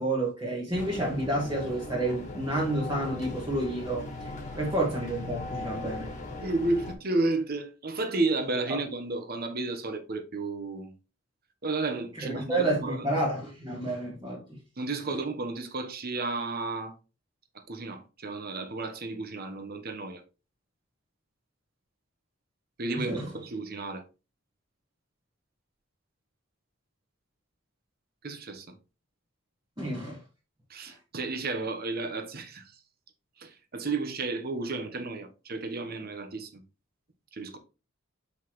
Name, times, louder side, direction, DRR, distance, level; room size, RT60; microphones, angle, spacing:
voice 1, 0.0-4.3 4.6-6.1 8.7-8.8 12.2-14.6 23.0-23.3 29.8-30.2 30.9-31.0, right 1 dB, 20° right, 1.6 m, -30 dB
sound 1, 0.7-6.9, left 2 dB, 35° left, 1.6 m, -39 dB
voice 2, 6.4-10.9 11.6-13.1 14.8-16.9 17.5-20.2 22.8-24.0 28.2-28.7 30.7-32.6 33.4-36.6 37.3-37.6, right 3 dB, 45° right, 1.1 m, -32 dB
6.0 x 5.5 x 3.1 m
head